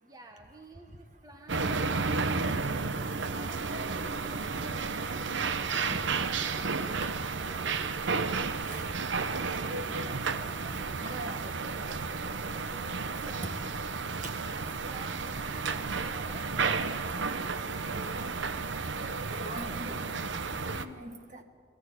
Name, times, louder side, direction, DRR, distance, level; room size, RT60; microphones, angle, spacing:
voice 1, 0.0-2.5 3.3-7.8 9.6-13.8 14.8-16.9, right 1 dB, 20° right, 3 dB, 1.2 m, -52 dB
sound 1, 1.5-20.8, right 4 dB, 65° right, 0.8 m, -32 dB
voice 2, 4.3-5.1 5.9-6.1 7.0-7.1 8.6-8.9 9.5-10.0 11.0-11.5 11.8-11.9 13.1-13.3 14.2-14.3 18.1-18.6 19.3-20.0 20.6-21.4, right 1 dB, 40° right, 6 dB, 1.5 m, -43 dB
21.5 x 14.0 x 8.5 m, 2.1 s
head